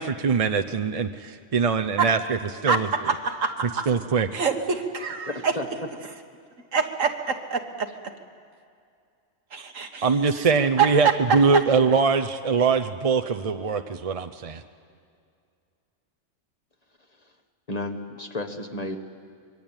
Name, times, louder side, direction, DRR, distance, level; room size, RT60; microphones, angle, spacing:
voice 1, 0.0-2.9 3.9-4.3 10.0-14.6, right 5 dB, 40° right, 7 dB, 0.6 m, -23 dB
voice 2, 2.7-3.9 4.3-5.5 6.7-7.9 9.5-10.1 10.4-10.5 10.8-11.4, right 6 dB, 90° right, 5 dB, 1.9 m, -25 dB
voice 3, 5.3-5.9 17.7-19.0, left 1 dB, 30° left, 5 dB, 1.5 m, -32 dB
24.5 x 23.0 x 9.0 m, 2.3 s
omnidirectional pair, 1.3 m